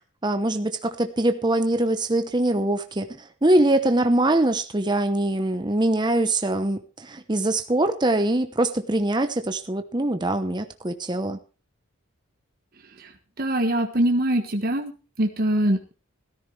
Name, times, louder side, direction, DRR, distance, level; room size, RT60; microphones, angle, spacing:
voice 1, 0.2-11.4, right 1 dB, 20° right, 0.9 m, -23 dB
voice 2, 13.4-14.9 15.2-15.9, right 1 dB, 45° right, 1.3 m, -23 dB
16.5 x 14.0 x 3.3 m
head